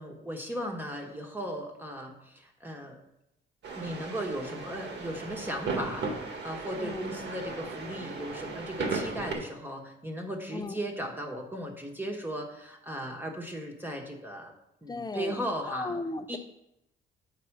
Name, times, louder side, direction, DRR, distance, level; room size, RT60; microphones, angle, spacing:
voice 1, 0.0-3.0 3.7-14.5 14.8-16.0 16.3-16.4, equal, 10° right, 2 dB, 1.3 m, -37 dB
sound 1, 3.6-9.3, right 4 dB, 65° right, 1.6 m, -36 dB
voice 2, 6.8-7.1 10.5-10.8 14.9-15.4 15.7-16.4, left 3 dB, 20° left, 10 dB, 0.6 m, -36 dB
7.7 x 4.8 x 4.7 m, 0.85 s
cardioid pair, 90°, 20 cm